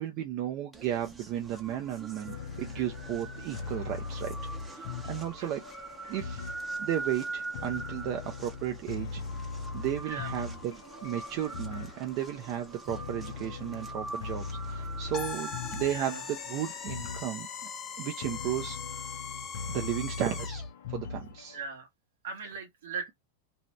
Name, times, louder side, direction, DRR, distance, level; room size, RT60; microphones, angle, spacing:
voice 1, 0.0-4.3 4.6-5.6 6.1-6.5 6.8-17.5 18.0-19.1 19.7-20.6 20.9-21.6, right 11 dB, 50° right, 0.5 m, -34 dB
sound 1, 0.7-17.1, right 3 dB, 10° right, 0.7 m, -43 dB
sound 2, 2.3-21.6, left 5 dB, 70° left, 0.6 m, -40 dB
sound 3, 15.1-20.7, left 7 dB, 30° left, 0.6 m, -40 dB
voice 2, 15.9-16.2 21.5-21.9 22.2-23.1, right 4 dB, 75° right, 1.0 m, -38 dB
2.7 x 2.1 x 2.9 m
hypercardioid pair, 115°, 0 cm